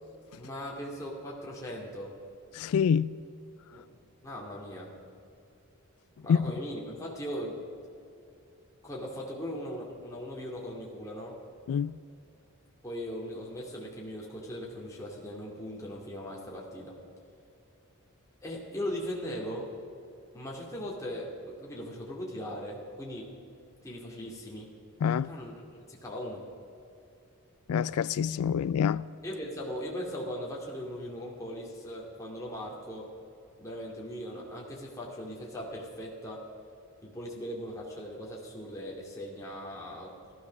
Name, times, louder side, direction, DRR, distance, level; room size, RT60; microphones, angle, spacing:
voice 1, 0.4-2.2 3.7-3.8 4.2-4.9 6.2-7.7 8.8-11.4 12.8-17.0 18.4-19.7 20.3-23.3 23.8-24.7 25.2-25.5 25.9-26.4 29.2-33.1 33.6-36.5 37.0-40.3, equal, 15° left, 2.3 m, -39 dB
voice 2, 2.5-3.2 6.3-6.5 11.7-12.0 25.0-25.3 27.7-29.1, left 7 dB, 85° left, 0.3 m, -26 dB
16.0 x 13.0 x 6.2 m
head